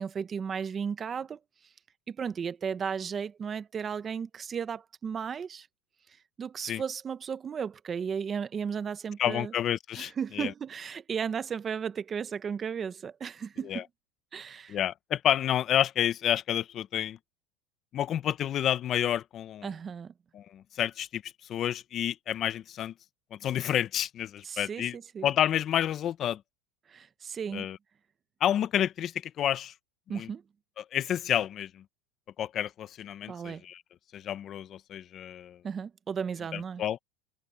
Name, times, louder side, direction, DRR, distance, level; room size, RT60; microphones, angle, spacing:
voice 1, 0.0-1.4 2.1-5.7 6.4-9.5 10.0-13.8 14.3-14.8 19.6-20.1 24.4-25.3 26.9-27.7 30.1-30.4 33.2-33.6 35.6-36.8, right 7 dB, 25° right, 0.8 m, -35 dB
voice 2, 9.2-10.5 13.6-13.8 14.7-17.2 17.9-19.7 20.3-22.9 23.3-24.9 25.2-26.4 27.5-27.8 28.4-29.7 30.1-30.3 30.8-31.8 32.4-33.8 34.1-35.6 36.5-37.0, left 10 dB, 35° left, 0.8 m, -30 dB
supercardioid pair, 135°, 0 cm